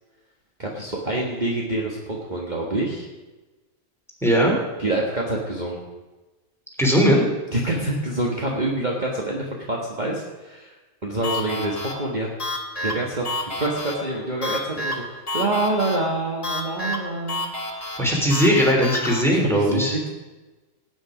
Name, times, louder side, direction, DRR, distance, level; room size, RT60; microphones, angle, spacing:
voice 1, 0.6-3.1 4.8-5.8 7.5-10.7 11.0-12.3 12.8-17.4 17.7-17.9 19.3-20.1, right 2 dB, 35° right, -2 dB, 1.7 m, -26 dB
voice 2, 4.2-4.5 6.8-7.3 18.0-20.0, equal, ahead, -1 dB, 3.3 m, -19 dB
sound 1, 11.2-19.2, left 1 dB, 25° left, 1.7 m, -31 dB
18.5 x 9.4 x 5.0 m, 1.2 s
omnidirectional pair, 1.4 m